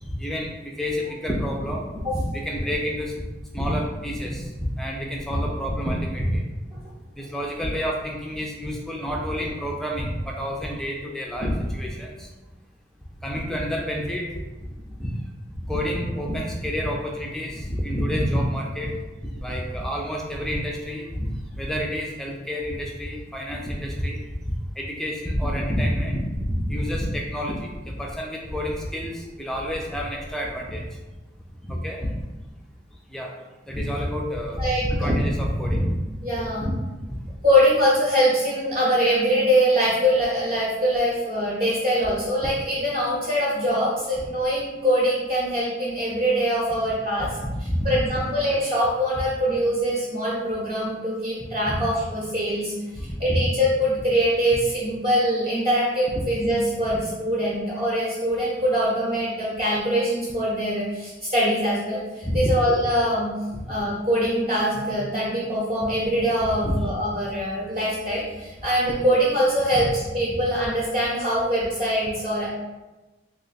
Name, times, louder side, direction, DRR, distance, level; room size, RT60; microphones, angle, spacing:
voice 1, 0.0-3.2 3.5-6.4 7.1-12.3 13.2-14.4 15.0-15.1 15.6-19.0 19.2-21.3 21.5-24.2 24.8-30.8 31.7-32.1 33.1-33.3 33.7-36.0 36.6-36.7 37.1-37.2 47.4-48.1 51.7-51.8 53.0-53.5 56.1-56.2 56.8-56.9 62.2-62.5 63.5-63.6 66.6-66.8 69.7-69.9, equal, ahead, -1 dB, 0.4 m, -28 dB
voice 2, 34.6-35.1 36.2-36.6 37.4-47.3 47.8-52.7 53.2-63.3 63.7-69.9 70.1-72.5, equal, 30° right, -7 dB, 0.7 m, -23 dB
3.0 x 2.2 x 3.9 m, 1.1 s
head